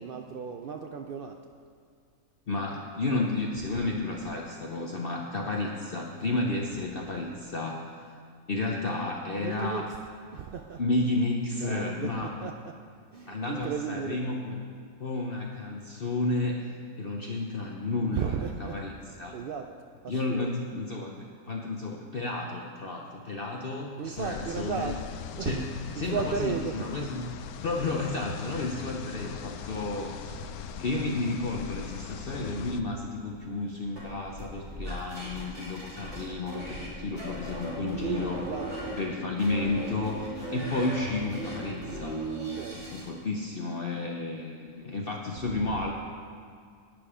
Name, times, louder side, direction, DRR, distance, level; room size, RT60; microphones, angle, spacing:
voice 1, 0.0-1.4 3.6-3.8 9.4-10.8 11.5-12.8 13.1-14.2 18.1-18.8 19.3-19.7 20.0-20.6 24.0-25.0 25.3-26.8 30.3-30.4 32.5-32.9 38.0-38.7 41.2-41.3 42.5-42.8 45.4-45.8, right 6 dB, 85° right, 5 dB, 0.4 m, -35 dB
voice 2, 2.5-7.8 8.5-9.8 10.8-12.5 13.3-14.6 15.0-16.7 17.0-18.3 18.6-18.9 19.2-19.3 20.1-21.1 21.5-24.9 25.4-25.6 26.0-27.3 27.6-38.4 39.0-40.2 40.5-42.2 42.7-45.9, left 2 dB, 45° left, 0 dB, 0.8 m, -32 dB
sound 1, 24.2-32.8, left 8 dB, 85° left, 1.1 m, -40 dB
sound 2, 34.0-36.9 37.2-39.0 39.4-43.1, right 1 dB, 50° right, 3.8 m, -37 dB
11.0 x 8.9 x 4.9 m, 2.2 s
omnidirectional pair, 1.5 m